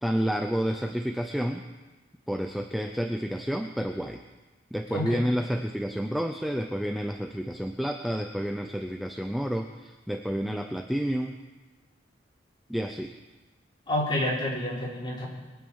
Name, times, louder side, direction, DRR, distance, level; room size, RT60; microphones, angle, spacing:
voice 1, 0.0-1.6 2.3-4.2 4.7-11.4 12.7-13.2, equal, ahead, 4 dB, 0.5 m, -30 dB
voice 2, 4.9-5.2 13.9-15.3, left 1 dB, 25° left, -5 dB, 4.4 m, -29 dB
22.0 x 8.9 x 7.2 m, 1.2 s
head